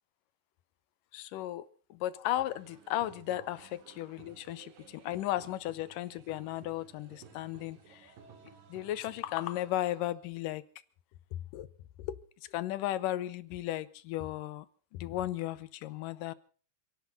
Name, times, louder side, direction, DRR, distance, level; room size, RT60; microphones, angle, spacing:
voice 1, 1.1-8.1 8.7-10.6 11.3-11.7 12.0-12.2 12.5-14.7 14.9-16.3, left 14 dB, 80° left, 17 dB, 2.5 m, -35 dB
sound 1, 2.3-10.0, right 6 dB, 85° right, 3.9 m, -56 dB
28.5 x 12.0 x 4.1 m, 0.42 s
omnidirectional pair, 3.9 m